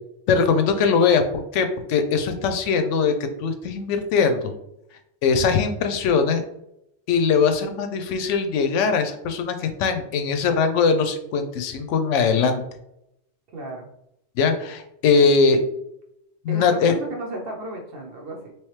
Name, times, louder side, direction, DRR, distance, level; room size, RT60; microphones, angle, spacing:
voice 1, 0.3-1.2 1.5-3.1 3.4-4.5 5.2-6.4 7.1-12.6 14.4-15.6 16.4-16.9, left 5 dB, 90° left, 7 dB, 0.9 m, -21 dB
voice 2, 13.5-13.9 16.5-18.5, right 1 dB, 55° right, 1 dB, 0.9 m, -33 dB
3.2 x 3.1 x 3.1 m, 0.79 s
omnidirectional pair, 1.2 m